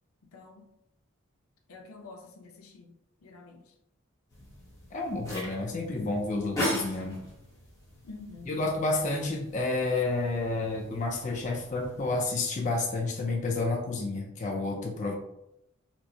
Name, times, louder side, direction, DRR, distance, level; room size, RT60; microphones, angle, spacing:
voice 1, 0.2-0.7 1.7-2.9 3.2-3.6 8.0-8.6, left 3 dB, 85° left, 2 dB, 0.6 m, -47 dB
sound 1, 4.3-12.1, left 1 dB, 15° left, 0.9 m, -39 dB
voice 2, 4.9-7.2 8.5-15.1, left 2 dB, 35° left, 0 dB, 0.4 m, -30 dB
4.4 x 2.0 x 2.7 m, 0.83 s
head